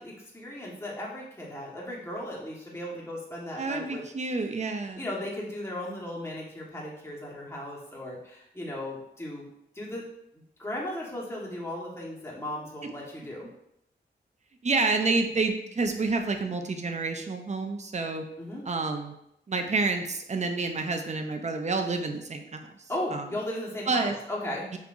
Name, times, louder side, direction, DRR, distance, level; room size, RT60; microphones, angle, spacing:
voice 1, 0.0-4.0 4.9-9.5 9.7-10.0 10.3-13.5 18.4-18.6 22.9-24.7, left 1 dB, 15° left, -5 dB, 1.5 m, -36 dB
voice 2, 3.6-5.1 12.8-12.9 14.6-18.2 18.6-19.1 19.5-22.7 23.1-23.3 23.9-24.2 24.7-24.8, right 3 dB, 35° right, 5 dB, 0.6 m, -29 dB
5.7 x 3.0 x 2.6 m, 0.79 s
cardioid pair, 60°, 20 cm